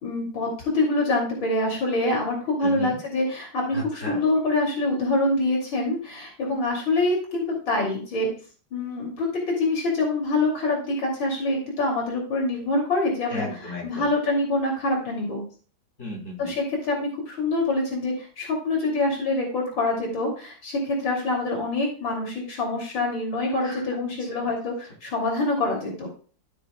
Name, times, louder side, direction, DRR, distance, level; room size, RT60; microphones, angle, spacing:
voice 1, 0.0-8.3 8.7-15.4 16.4-26.1, left 2 dB, 85° left, -1 dB, 3.5 m, -25 dB
voice 2, 2.6-3.0 3.7-4.2 13.3-14.1 16.0-16.5 23.6-23.8 24.3-24.4, left 1 dB, 40° left, -3 dB, 3.6 m, -34 dB
14.0 x 6.8 x 2.3 m, 0.40 s
omnidirectional pair, 2.0 m